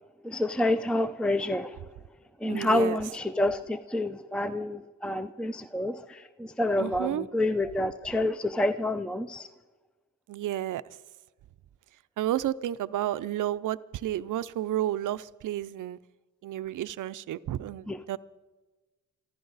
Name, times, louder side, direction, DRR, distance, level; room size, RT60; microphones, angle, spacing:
voice 1, 0.2-1.8 2.4-9.5 17.9-18.2, left 1 dB, 5° left, 11 dB, 0.5 m, -28 dB
voice 2, 2.5-3.0 6.8-7.3 10.3-10.8 12.2-16.0 16.4-18.2, right 12 dB, 80° right, 15 dB, 0.6 m, -31 dB
24.0 x 15.0 x 4.0 m, 1.2 s
cardioid pair, 75°, 31 cm